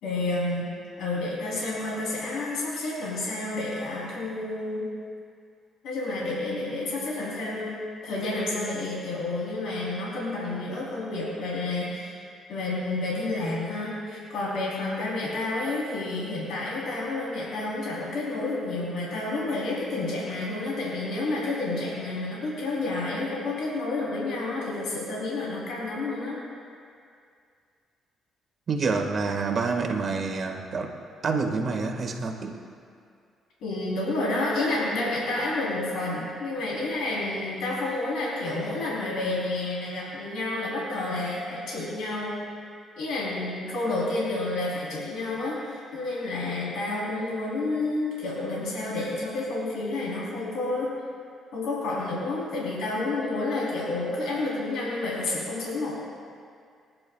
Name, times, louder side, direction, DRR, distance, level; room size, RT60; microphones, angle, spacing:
voice 1, 0.0-0.7 1.0-4.9 5.8-7.7 8.0-12.2 12.5-26.4 33.6-42.4 43.0-50.9 51.5-56.0, left 2 dB, 85° left, -6 dB, 3.6 m, -30 dB
voice 2, 28.7-30.9 31.2-32.6, right 4 dB, 50° right, 2 dB, 1.7 m, -27 dB
29.0 x 10.5 x 2.3 m, 2.3 s
cardioid pair, 90°, 0 cm